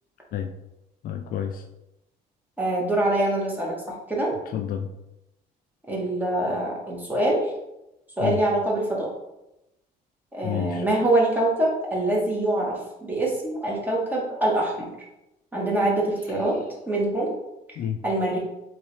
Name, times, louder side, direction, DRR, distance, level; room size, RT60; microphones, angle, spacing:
voice 1, 1.0-1.6 4.5-4.9 8.2-8.4 10.4-10.8 17.8-18.0, left 9 dB, 55° left, 6 dB, 0.4 m, -29 dB
voice 2, 2.6-4.3 5.9-7.4 8.2-9.1 10.3-14.9 15.5-16.6 16.9-17.3 18.0-18.4, right 1 dB, 10° right, -3 dB, 1.3 m, -24 dB
4.1 x 3.1 x 3.2 m, 0.91 s
cardioid pair, 110°, 17 cm